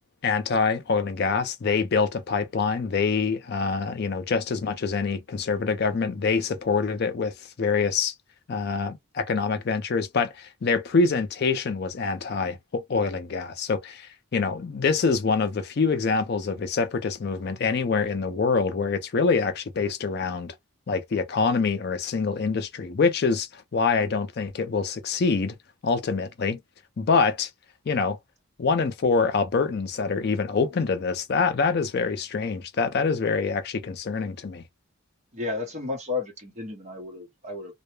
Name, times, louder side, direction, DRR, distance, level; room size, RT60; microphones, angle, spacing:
voice 1, 0.2-7.3 7.6-8.1 8.5-20.5 20.9-25.5 25.8-26.6 27.0-27.5 27.9-28.2 28.6-34.6, left 4 dB, 45° left, 0.4 m, -25 dB
voice 2, 35.3-37.8, left 3 dB, 30° right, 0.8 m, -33 dB
2.2 x 2.0 x 3.0 m
head